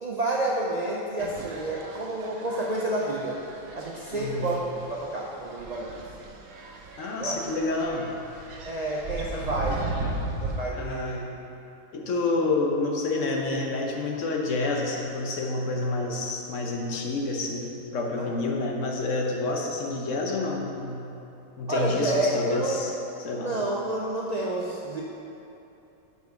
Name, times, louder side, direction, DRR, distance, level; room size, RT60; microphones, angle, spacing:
voice 1, 0.0-3.4 3.7-4.6 4.9-6.0 7.2-7.5 8.6-10.1 10.4-11.3 12.0-12.1 18.2-18.3 21.7-22.8 23.3-25.0, right 2 dB, 60° right, -4 dB, 0.4 m, -29 dB
sound 1, 1.2-10.7, right 3 dB, 85° right, 1.2 m, -37 dB
voice 2, 4.1-4.5 7.0-8.1 9.3-10.2 10.7-11.2 11.9-21.0 21.6-23.5, left 3 dB, 65° left, 0 dB, 1.2 m, -29 dB
6.5 x 5.1 x 5.2 m, 2.9 s
omnidirectional pair, 1.5 m